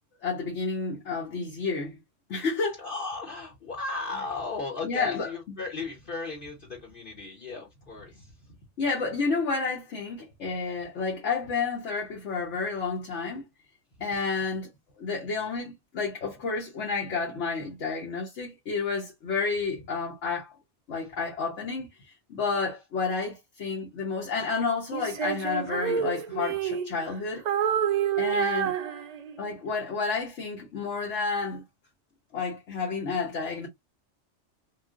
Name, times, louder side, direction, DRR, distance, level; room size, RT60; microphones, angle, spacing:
voice 1, 0.2-2.0 2.3-2.8 4.8-5.3 8.8-13.4 14.0-14.7 15.0-20.5 20.9-21.9 22.3-27.4 28.2-28.7 29.4-31.6 32.3-33.7, left 4 dB, 75° left, 1.2 m, -30 dB
voice 2, 2.8-8.6 21.0-21.1 28.3-28.6, left 3 dB, 50° left, 1.0 m, -36 dB
Female singing, 24.9-27.1 27.4-29.5, right 9 dB, 60° right, 0.4 m, -28 dB
3.1 x 2.5 x 2.3 m
omnidirectional pair, 1.2 m